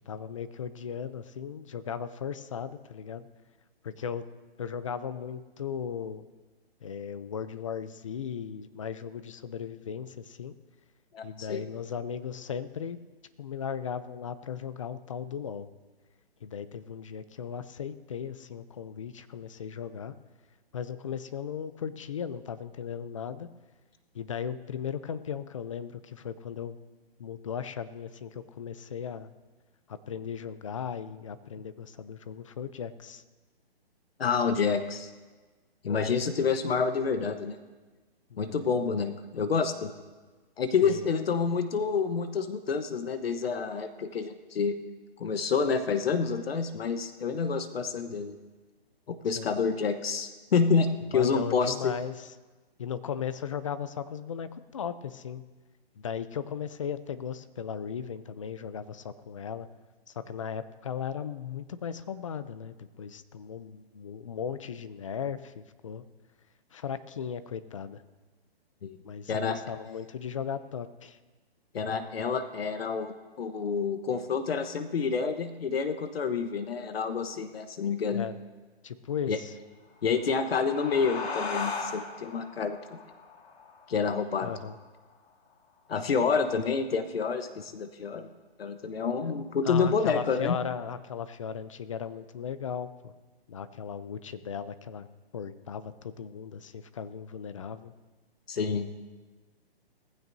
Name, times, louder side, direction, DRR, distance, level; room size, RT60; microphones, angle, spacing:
voice 1, 0.1-3.3 3.8-4.3 4.6-6.2 6.8-10.5 11.2-13.0 13.4-15.7 16.4-20.2 20.7-23.5 24.1-26.8 27.2-29.3 29.9-33.2 38.3-38.6 40.8-41.1 49.3-49.7 51.1-52.3 52.8-55.4 56.0-59.7 60.1-66.0 66.7-68.0 69.0-71.2 78.1-78.4 78.8-79.5 84.4-84.8 89.6-93.1 93.5-95.1 95.3-97.9, left 7 dB, 30° left, 13 dB, 0.5 m, -37 dB
voice 2, 11.1-11.6 34.2-35.1 35.8-37.6 38.4-39.9 40.6-44.8 45.2-48.4 49.1-51.9 68.8-69.0 69.3-69.6 71.7-78.2 79.3-79.4 80.0-83.0 83.9-84.5 85.9-88.3 88.6-90.6 98.5-98.9, left 5 dB, 70° left, 9 dB, 1.1 m, -28 dB
sound 1, 80.0-85.1, left 4 dB, 85° left, 2.2 m, -38 dB
19.5 x 15.0 x 2.7 m, 1.3 s
hypercardioid pair, 165°, 31 cm